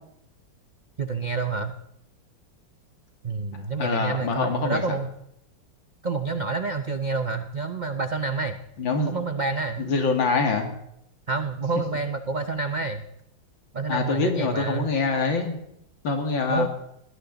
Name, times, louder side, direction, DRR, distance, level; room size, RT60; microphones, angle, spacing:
voice 1, 1.0-1.8 3.2-5.1 6.0-8.6 8.9-9.9 11.3-13.1 13.7-14.9 16.5-16.7, right 4 dB, 65° right, 8 dB, 0.4 m, -28 dB
voice 2, 3.8-4.8 8.8-9.3 9.8-10.7 13.9-15.6 16.0-16.7, left 4 dB, 85° left, 4 dB, 3.0 m, -25 dB
21.0 x 16.0 x 4.0 m, 0.77 s
omnidirectional pair, 2.0 m